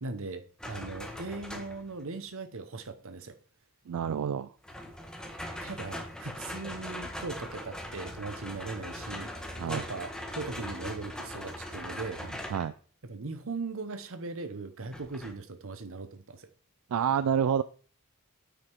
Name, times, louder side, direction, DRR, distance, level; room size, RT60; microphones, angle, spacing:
voice 1, 0.0-3.4 5.6-12.2 13.1-16.5, right 3 dB, 65° right, 0.9 m, -39 dB
sound 1, 0.6-2.0 4.6-12.7 14.9-15.3, left 1 dB, 5° left, 1.2 m, -40 dB
voice 2, 3.9-4.5 9.6-9.8 12.2-12.7 16.9-17.6, right 8 dB, 80° right, 0.4 m, -28 dB
8.9 x 5.0 x 4.6 m
head